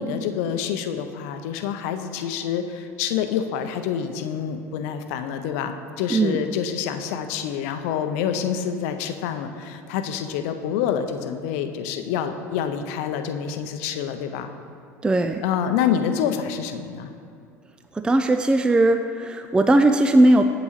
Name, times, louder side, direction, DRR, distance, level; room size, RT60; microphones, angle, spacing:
voice 1, 0.0-14.5 15.4-17.1, left 8 dB, 60° left, 8 dB, 0.6 m, -27 dB
voice 2, 15.0-15.4 17.9-20.5, right 1 dB, 10° right, 8 dB, 0.3 m, -18 dB
8.5 x 7.8 x 3.1 m, 2.5 s
figure-of-eight pair, 75°, 9 cm